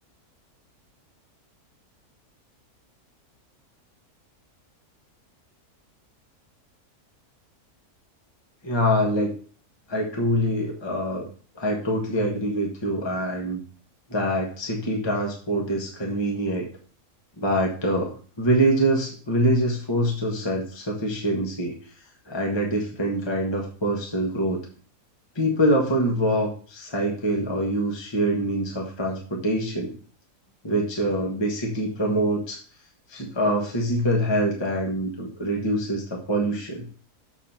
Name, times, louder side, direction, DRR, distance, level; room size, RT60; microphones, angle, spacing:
voice 1, 8.6-9.4 9.9-11.3 11.5-13.6 14.1-16.6 17.4-21.8 22.2-24.6 25.3-29.9 30.6-32.6 33.1-36.9, right 1 dB, 20° left, 0 dB, 1.3 m, -25 dB
7.2 x 4.3 x 5.7 m, 0.41 s
omnidirectional pair, 1.6 m